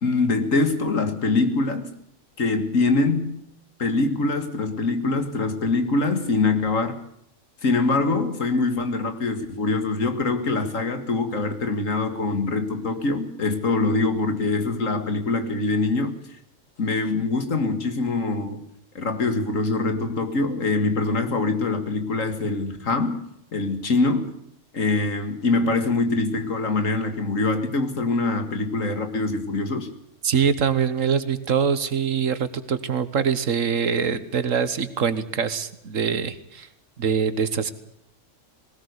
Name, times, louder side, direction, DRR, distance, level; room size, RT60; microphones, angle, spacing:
voice 1, 0.0-1.9 2.4-3.4 3.8-7.0 7.6-16.1 16.8-18.6 19.0-23.2 23.5-24.3 24.7-29.9, left 3 dB, 90° left, 8 dB, 2.4 m, -24 dB
voice 2, 30.2-36.7 37.0-37.7, right 6 dB, 90° right, 13 dB, 1.7 m, -24 dB
19.5 x 18.5 x 8.2 m, 0.72 s
omnidirectional pair, 1.3 m